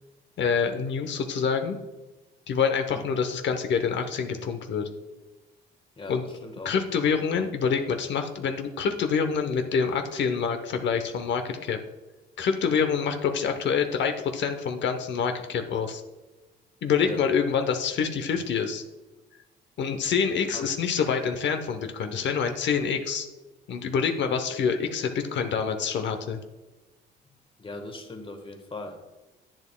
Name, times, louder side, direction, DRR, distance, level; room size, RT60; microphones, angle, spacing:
voice 1, 0.4-1.8 2.5-4.9 6.1-6.2 6.6-11.8 12.4-16.0 16.8-18.8 19.8-23.3 23.7-26.4, left 6 dB, 65° left, 6 dB, 0.8 m, -26 dB
voice 2, 6.0-6.7 17.0-17.2 20.3-20.7 27.6-29.2, left 2 dB, 25° left, 5 dB, 1.3 m, -40 dB
10.5 x 8.5 x 2.2 m, 1.1 s
cardioid pair, 90°, 20 cm